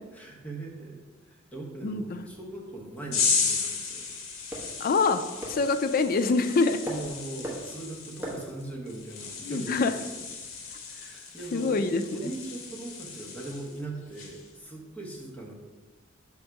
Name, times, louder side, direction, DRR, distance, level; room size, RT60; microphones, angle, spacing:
voice 1, 0.1-4.1 6.9-10.3 10.9-15.5, right 2 dB, 5° left, -2 dB, 1.0 m, -40 dB
voice 2, 1.8-2.2 4.8-5.2 5.5-6.8 9.4-9.9 11.5-12.0, left 4 dB, 45° left, 9 dB, 0.4 m, -25 dB
sound 1, 2.0-10.8, right 1 dB, 10° right, 1.2 m, -44 dB
sound 2, 3.1-13.8 14.1-14.5, left 5 dB, 85° left, 0.7 m, -34 dB
6.3 x 3.5 x 4.6 m, 1.2 s
head